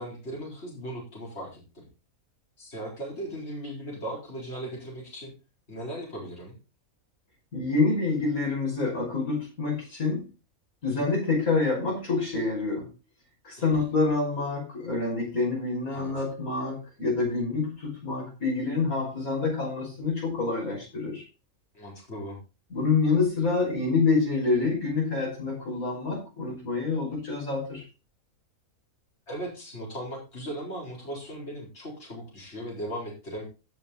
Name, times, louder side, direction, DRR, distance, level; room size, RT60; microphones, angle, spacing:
voice 1, 0.0-1.9 2.6-5.3 5.7-6.5 13.7-13.8 15.9-16.1 21.7-22.4 29.3-33.4, right 1 dB, 50° left, -3 dB, 5.0 m, -37 dB
voice 2, 7.5-10.2 10.8-12.9 13.4-21.3 22.7-27.8, left 3 dB, 75° left, -2 dB, 6.2 m, -27 dB
16.0 x 7.0 x 4.0 m, 0.30 s
omnidirectional pair, 1.5 m